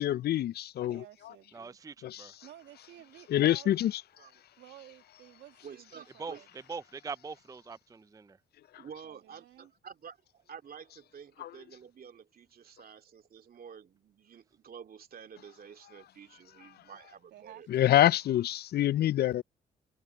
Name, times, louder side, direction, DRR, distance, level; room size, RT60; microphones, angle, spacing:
voice 1, 0.0-1.0 2.0-2.2 3.3-3.9 11.4-11.5 17.7-19.4, left 13 dB, 60° left, 0.4 m, -26 dB
voice 2, 0.9-1.8 2.4-3.8 4.6-6.5 9.0-9.7 17.3-18.1, right 14 dB, 80° right, 2.3 m, -53 dB
voice 3, 1.5-2.4 6.2-6.4 6.7-8.4, right 4 dB, 20° right, 0.5 m, -42 dB
voice 4, 5.6-6.4 8.8-17.7 18.0-18.4, right 7 dB, 55° right, 2.4 m, -50 dB
supercardioid pair, 55°, 18 cm